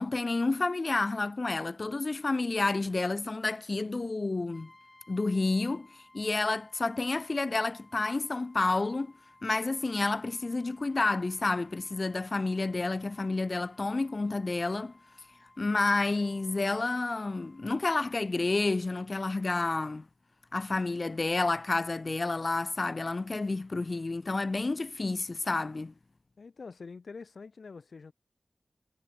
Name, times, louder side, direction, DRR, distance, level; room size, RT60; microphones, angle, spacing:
voice 1, 0.0-4.7 5.1-9.1 9.4-14.9 15.6-20.1 20.5-25.9, left 3 dB, 50° left, 0.3 m, -30 dB
Brass instrument, 4.5-18.2, left 1 dB, 25° left, 7.0 m, -60 dB
voice 2, 26.4-28.1, left 4 dB, 85° left, 0.8 m, -45 dB
wide cardioid pair, 70°, 0 cm